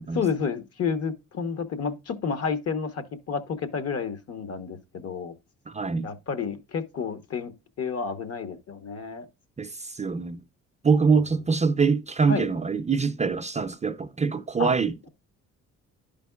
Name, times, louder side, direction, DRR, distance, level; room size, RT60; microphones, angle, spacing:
voice 1, 0.1-5.4 6.0-7.5 7.8-9.3 12.3-12.5 14.6-14.7, left 6 dB, 55° left, 1.0 m, -30 dB
voice 2, 5.7-6.1 9.6-10.4 10.8-15.0, right 5 dB, 25° right, 0.4 m, -24 dB
11.0 x 5.1 x 2.3 m
cardioid pair, 90°, 30 cm